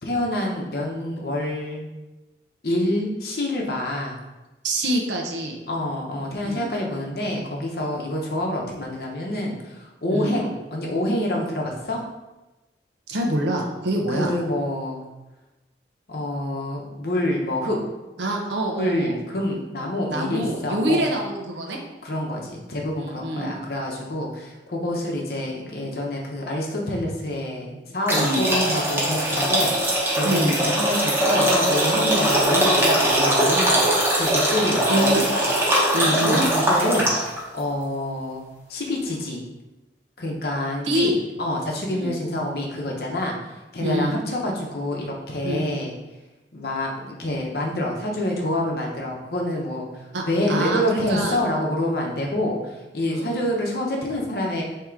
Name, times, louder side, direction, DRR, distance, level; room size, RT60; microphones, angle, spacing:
voice 1, 0.0-1.9 2.6-4.2 5.7-12.0 14.1-15.0 16.1-17.8 18.8-21.0 22.0-29.7 30.2-33.8 34.2-35.4 35.7-37.1 37.5-38.4 38.7-39.4 40.2-41.1 41.4-43.4 43.7-45.9 46.5-49.9 50.3-54.6, left 1 dB, 55° left, -1 dB, 0.8 m, -27 dB
voice 2, 4.6-5.6 6.4-6.7 10.0-10.4 13.1-14.4 18.2-19.2 20.1-21.8 23.0-23.5 28.1-28.5 30.2-30.5 34.9-35.2 35.9-36.5 40.8-41.1 41.9-42.2 43.8-44.2 45.4-45.7 50.1-51.4 53.1-53.3, right 1 dB, 80° right, 1 dB, 0.7 m, -25 dB
sound 1, 28.1-37.4, right 1 dB, 15° right, 0.9 m, -21 dB
3.6 x 2.9 x 4.5 m, 1.1 s
head